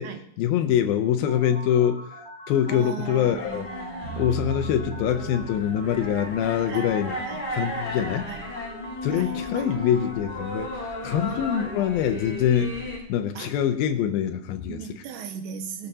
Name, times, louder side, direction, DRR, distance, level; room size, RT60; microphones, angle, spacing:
voice 1, 0.4-2.2 2.5-3.7 4.2-7.2 7.5-8.3 9.0-14.8, left 9 dB, 85° left, 7 dB, 2.1 m, -24 dB
sound 1, 1.3-11.9, equal, 20° right, 7.1 m, -42 dB
voice 2, 2.7-4.5 6.6-6.9 7.2-7.5 8.2-8.6 9.1-10.0 11.3-11.9 13.4-13.6 14.7-15.9, right 7 dB, 80° right, 7 dB, 3.1 m, -39 dB
sound 2, 3.0-13.0, left 2 dB, 10° left, 2.8 m, -35 dB
sound 3, 4.0-7.8, right 6 dB, 60° right, 8.0 m, -38 dB
21.0 x 12.0 x 2.9 m, 0.67 s
omnidirectional pair, 5.2 m